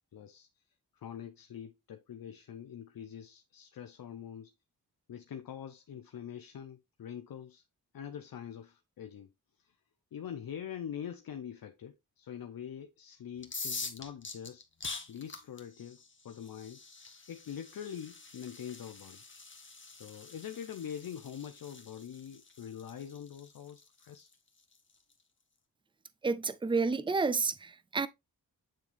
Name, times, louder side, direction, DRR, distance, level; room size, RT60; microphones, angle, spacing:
voice 1, 0.1-0.5 0.9-4.5 5.1-7.6 7.9-9.3 9.6-9.7 10.1-14.6 15.1-16.8 17.3-19.2 19.9-24.3, left 9 dB, 65° left, 0.8 m, -44 dB
sound 1, 13.4-25.1, left 4 dB, 30° left, 1.5 m, -46 dB
voice 2, 26.2-28.1, right 4 dB, 15° right, 0.6 m, -30 dB
9.0 x 3.6 x 3.4 m
cardioid pair, 65°, 37 cm